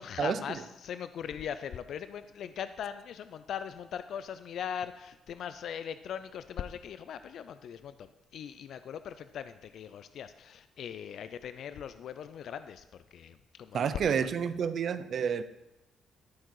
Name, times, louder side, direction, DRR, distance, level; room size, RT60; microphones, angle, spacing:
voice 1, 0.0-12.8 13.1-14.3, left 8 dB, 70° left, 0.3 m, -40 dB
voice 2, 13.7-15.4, right 7 dB, 60° right, 0.5 m, -29 dB
12.5 x 4.7 x 4.7 m
cardioid pair, 90°, 0 cm